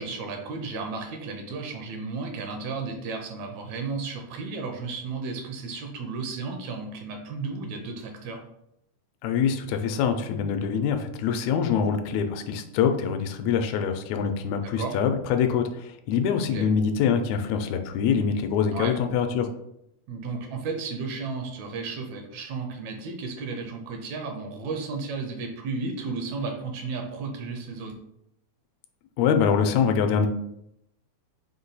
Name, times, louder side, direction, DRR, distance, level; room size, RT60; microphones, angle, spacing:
voice 1, 0.0-8.4 14.8-15.0 16.4-16.7 18.7-18.9 20.1-27.9, right 4 dB, 75° right, 3 dB, 1.8 m, -33 dB
voice 2, 9.2-19.5 29.2-30.3, left 7 dB, 80° left, 6 dB, 1.7 m, -24 dB
5.1 x 2.2 x 3.9 m, 0.79 s
omnidirectional pair, 3.4 m